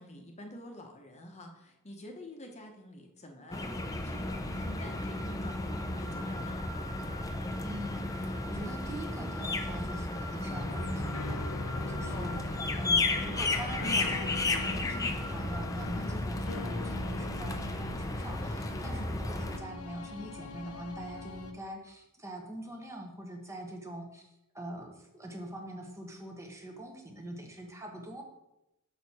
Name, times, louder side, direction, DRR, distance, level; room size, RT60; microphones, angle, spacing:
voice 1, 0.0-6.6 12.1-12.4 18.8-19.2, left 1 dB, 30° left, 2 dB, 0.9 m, -48 dB
sound 1, 3.5-19.6, left 2 dB, 15° left, 0.5 m, -34 dB
voice 2, 7.6-11.4 11.9-12.4 12.7-24.3 24.5-28.2, right 1 dB, 15° right, 2 dB, 0.8 m, -43 dB
sound 2, 10.5-21.5, left 3 dB, 75° left, 0.7 m, -42 dB
6.3 x 5.7 x 4.2 m, 0.90 s
head